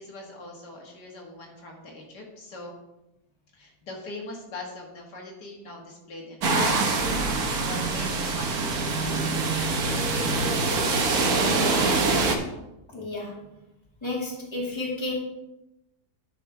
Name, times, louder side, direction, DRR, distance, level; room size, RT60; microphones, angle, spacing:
voice 1, 0.0-2.7 3.5-11.8, left 2 dB, 80° left, 0 dB, 2.3 m, -42 dB
sound 1, 6.4-12.4, right 3 dB, 65° right, 1.6 m, -24 dB
voice 2, 12.9-13.4 14.0-15.1, left 2 dB, 15° left, -4 dB, 2.5 m, -31 dB
9.8 x 6.0 x 4.8 m, 0.92 s
omnidirectional pair, 1.8 m